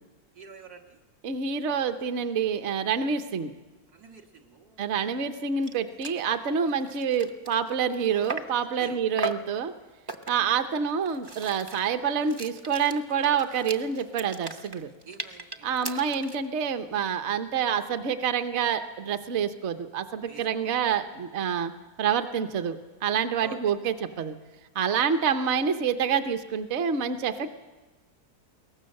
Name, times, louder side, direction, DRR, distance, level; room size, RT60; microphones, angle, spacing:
voice 1, 0.3-1.0 3.9-5.3 8.8-9.0 10.2-10.5 15.0-15.8 20.3-20.9 23.4-24.0 25.1-25.3, right 5 dB, 80° right, 1 dB, 2.4 m, -48 dB
voice 2, 1.2-3.5 4.8-9.7 10.3-14.9 15.6-21.7 22.0-24.4 24.7-27.6, right 7 dB, 55° right, 8 dB, 1.0 m, -27 dB
sound 1, 5.3-5.4 5.6-5.8 6.0-6.2 6.7-8.6 9.2-9.5 10.1-10.6 11.0-16.5, right 3 dB, 30° right, 0.4 m, -38 dB
22.0 x 18.0 x 6.5 m, 1.2 s
omnidirectional pair, 1.6 m